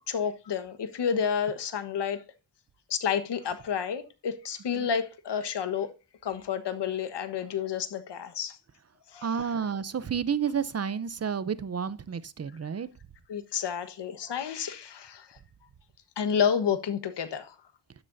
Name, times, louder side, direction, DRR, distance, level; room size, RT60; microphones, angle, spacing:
voice 1, 0.1-2.2 2.9-5.9 6.2-8.6 9.1-9.5 13.3-15.4 16.2-17.5, left 7 dB, 75° left, 1.4 m, -30 dB
voice 2, 9.2-12.9, right 7 dB, 35° right, 0.7 m, -30 dB
12.0 x 11.0 x 2.7 m
wide cardioid pair, 160°, 41 cm